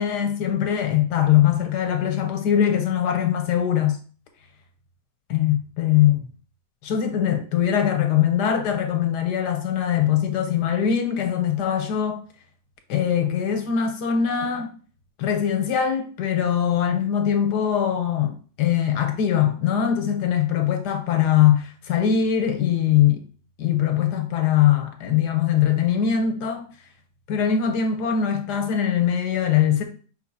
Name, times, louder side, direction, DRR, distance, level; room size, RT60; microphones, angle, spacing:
voice 1, 0.0-4.0 5.3-6.3 6.8-12.2 12.9-14.7 15.2-23.2 23.6-26.7 27.3-29.8, left 9 dB, 90° left, 1.3 m, -22 dB
5.4 x 3.1 x 2.7 m
omnidirectional pair, 1.7 m